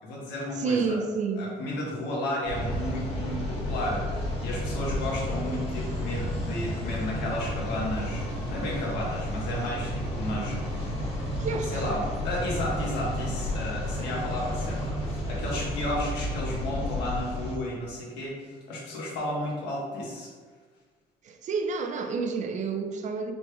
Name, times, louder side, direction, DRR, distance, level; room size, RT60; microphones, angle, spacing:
voice 1, 0.0-1.0 1.4-10.9 11.7-20.3, left 1 dB, 85° left, 1.3 m, -33 dB
voice 2, 0.6-1.5 11.4-11.8 21.2-23.3, right 4 dB, 45° right, 0.4 m, -29 dB
sound 1, 2.4-17.6, equal, 35° left, 1.2 m, -31 dB
5.1 x 3.3 x 2.3 m
cardioid pair, 110°, 17 cm